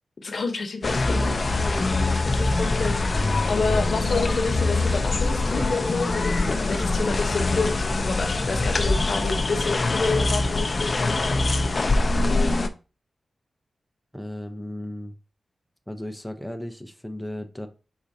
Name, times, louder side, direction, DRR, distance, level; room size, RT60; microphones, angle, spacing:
voice 1, 0.2-1.8 2.2-11.1 12.2-12.6, left 4 dB, 65° left, 0.9 m, -29 dB
sound 1, 0.8-12.7, left 2 dB, 45° left, 0.5 m, -23 dB
voice 2, 14.1-15.1 15.9-17.7, left 1 dB, ahead, 0.6 m, -35 dB
4.6 x 4.0 x 2.7 m
wide cardioid pair, 80°, 0 cm